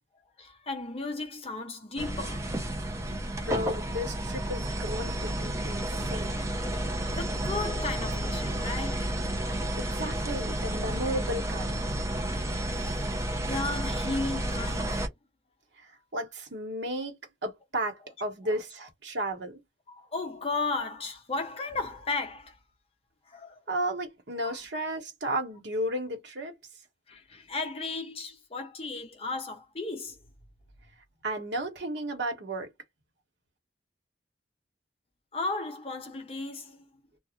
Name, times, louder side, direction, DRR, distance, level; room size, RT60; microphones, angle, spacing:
voice 1, 0.4-2.5 7.2-9.1 12.7-13.2 13.5-15.0 19.9-22.6 23.3-23.6 24.4-24.6 27.1-30.2 35.3-36.8, left 3 dB, 30° left, 0.5 m, -35 dB
sound 1, 2.0-15.1, right 1 dB, 15° right, 0.5 m, -31 dB
voice 2, 3.1-6.4 9.8-11.8 15.8-19.6 23.7-26.6 31.2-32.7, right 1 dB, 75° right, 1.1 m, -34 dB
2.5 x 2.3 x 2.9 m
head